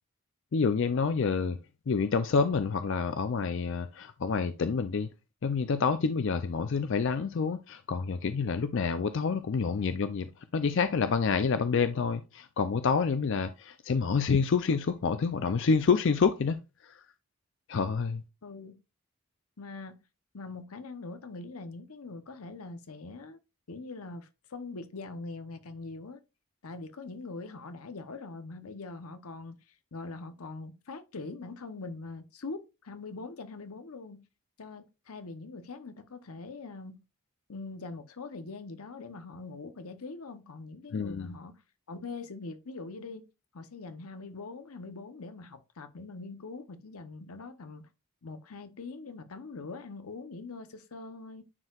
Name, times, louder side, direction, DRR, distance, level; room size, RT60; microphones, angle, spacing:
voice 1, 0.5-1.6 1.9-5.1 5.4-16.6 16.8-16.9 17.7-18.2 40.9-41.3, left 5 dB, 60° left, 0.4 m, -28 dB
voice 2, 18.4-18.8 19.6-20.0 20.3-23.4 23.7-26.2 26.6-29.6 29.9-34.2 34.6-37.0 37.5-41.6 41.9-43.3 43.5-47.9 48.2-51.4, left 3 dB, 85° left, 0.8 m, -42 dB
9.6 x 4.5 x 2.4 m
head